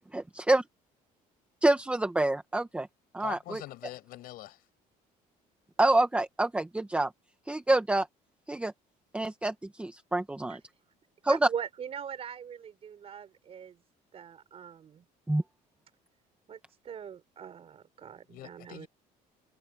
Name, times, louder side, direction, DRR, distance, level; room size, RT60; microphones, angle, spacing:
voice 1, 0.1-0.6 1.6-2.9 3.1-3.6 5.8-7.1 7.5-8.1 8.5-8.7 9.1-10.6 11.2-11.5 15.3-15.4, right 2 dB, 10° right, 1.2 m, -27 dB
voice 2, 3.2-4.7 18.3-18.9, left 16 dB, 75° left, 5.7 m, -43 dB
voice 3, 11.3-13.8 14.1-15.1 16.5-16.6 16.8-18.9, right 8 dB, 40° right, 5.6 m, -41 dB
cardioid pair, 135°, 15 cm